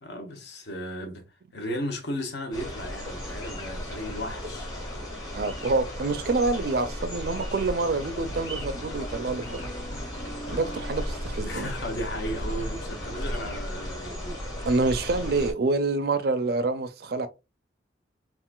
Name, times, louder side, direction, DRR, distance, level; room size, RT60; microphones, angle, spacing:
voice 1, 0.0-4.7 10.5-10.8 11.4-14.4, equal, 60° left, 0.8 m, -35 dB
sound 1, 2.5-15.5, equal, 20° left, 1.4 m, -35 dB
voice 2, 5.3-9.6 10.5-11.7 14.6-17.3, right 3 dB, 55° right, 0.4 m, -27 dB
sound 2, 8.2-13.6, right 1 dB, 85° left, 1.4 m, -41 dB
3.7 x 2.4 x 2.3 m
head